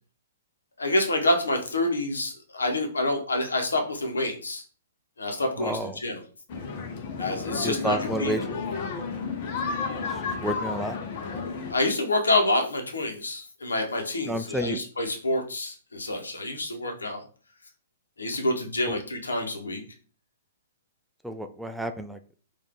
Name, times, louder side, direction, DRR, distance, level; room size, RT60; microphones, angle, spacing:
voice 1, 0.8-4.6 5.2-6.2 7.2-8.3 11.7-17.2 18.2-19.8, left 2 dB, 85° left, 3 dB, 1.1 m, -27 dB
voice 2, 5.6-6.0 7.6-8.6 10.0-11.0 14.3-14.8 18.9-19.0 21.2-22.2, right 1 dB, 5° right, 7 dB, 0.3 m, -30 dB
sound 1, 6.5-11.7, left 5 dB, 45° left, 0.9 m, -32 dB
4.6 x 2.6 x 3.7 m, 0.41 s
hypercardioid pair, 125°, 0 cm